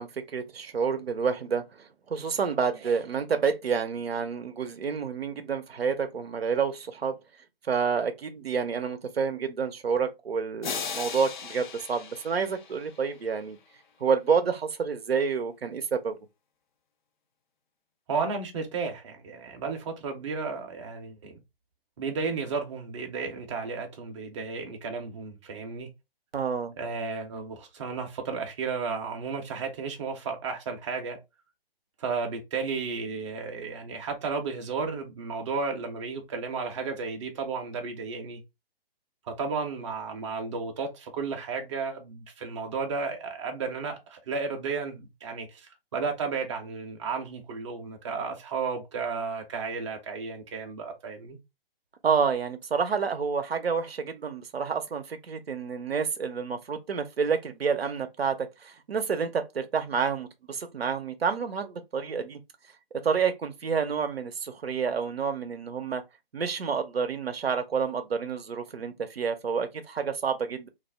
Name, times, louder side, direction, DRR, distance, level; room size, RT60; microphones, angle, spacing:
voice 1, 0.0-7.1 7.7-13.6 14.0-16.2 26.3-26.7 52.0-62.4 63.0-66.0 66.3-70.7, right 6 dB, 90° right, 0.5 m, -29 dB
sound 1, 10.6-13.3, left 6 dB, 55° left, 0.4 m, -37 dB
voice 2, 18.1-21.4 22.0-25.9 26.8-31.2 32.0-38.4 39.3-51.4, right 4 dB, 30° right, 0.5 m, -33 dB
2.4 x 2.0 x 3.3 m
figure-of-eight pair, 140°, 30 cm